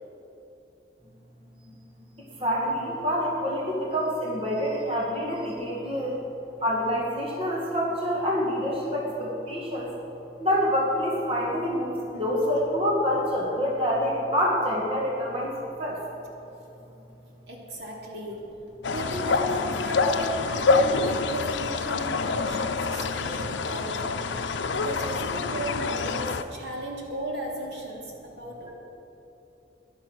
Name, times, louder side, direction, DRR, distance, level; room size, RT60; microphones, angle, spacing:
voice 1, 2.4-6.2 6.6-9.9 10.4-15.5 15.8-16.0, equal, 30° right, -4 dB, 2.0 m, -26 dB
voice 2, 17.5-18.4 18.9-28.7, right 1 dB, 70° right, -2 dB, 2.7 m, -35 dB
sound 1, 18.8-26.4, left 4 dB, 90° left, 0.6 m, -26 dB
13.0 x 11.0 x 6.3 m, 3.0 s
head